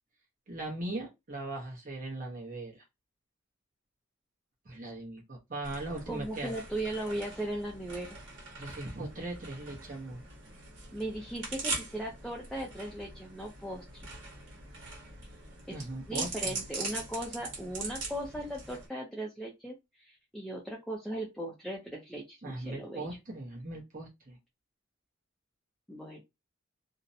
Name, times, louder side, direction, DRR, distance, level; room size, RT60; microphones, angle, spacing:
voice 1, 0.5-2.8 4.6-6.6 8.5-10.2 15.7-16.6 22.4-24.4, right 2 dB, 40° right, 0.8 m, -39 dB
sound 1, 5.6-18.9, right 3 dB, 65° right, 1.2 m, -42 dB
voice 2, 6.1-8.2 10.9-14.1 15.7-23.1 25.9-26.2, right 1 dB, ahead, 0.4 m, -38 dB
2.5 x 2.1 x 2.6 m
head